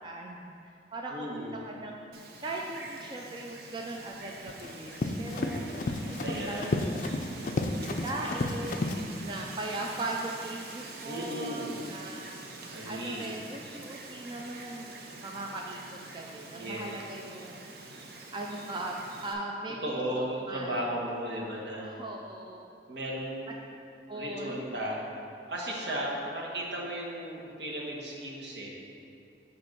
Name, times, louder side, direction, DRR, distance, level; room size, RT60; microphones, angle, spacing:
voice 1, 0.0-2.0 2.4-5.7 6.0-6.2 6.5-6.6 6.8-7.2 8.0-8.8 9.2-14.9 15.2-17.7 18.3-18.9 19.2-20.8 21.8-22.7 24.1-24.6 26.2-26.3, right 2 dB, 25° right, 0 dB, 0.3 m, -39 dB
voice 2, 1.1-1.6 6.2-6.8 11.0-11.7 12.7-13.2 16.6-17.0 19.8-22.0 22.9-23.5 24.1-25.0 25.5-28.7, right 1 dB, 70° right, -3 dB, 1.3 m, -35 dB
Wind, 2.1-19.3, right 3 dB, 55° right, 0.7 m, -46 dB
Run, 4.2-9.0, left 2 dB, 45° left, 0.4 m, -32 dB
7.8 x 3.5 x 5.9 m, 2.6 s
head